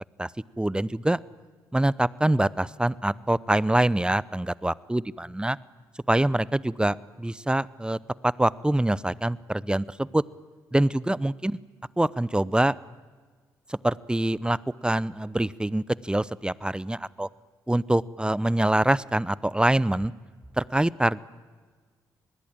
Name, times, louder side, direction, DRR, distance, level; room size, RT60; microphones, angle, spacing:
voice 1, 0.6-1.2 1.7-5.6 6.1-8.0 8.2-10.2 10.7-11.6 12.0-12.7 13.7-17.3 17.7-20.1 20.6-21.2, right 1 dB, 10° right, 22 dB, 0.8 m, -25 dB
26.5 x 20.5 x 9.1 m, 1.5 s
hypercardioid pair, 40°, 9 cm